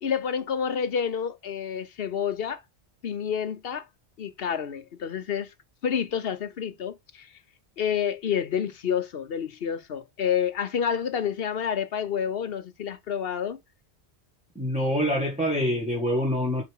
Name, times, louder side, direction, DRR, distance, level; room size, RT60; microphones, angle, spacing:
voice 1, 0.0-2.6 3.0-3.9 4.2-5.5 5.8-7.3 7.8-13.6, left 8 dB, 60° left, 1.0 m, -29 dB
voice 2, 14.6-16.6, equal, 5° right, 2.0 m, -25 dB
7.1 x 4.9 x 3.7 m
omnidirectional pair, 1.1 m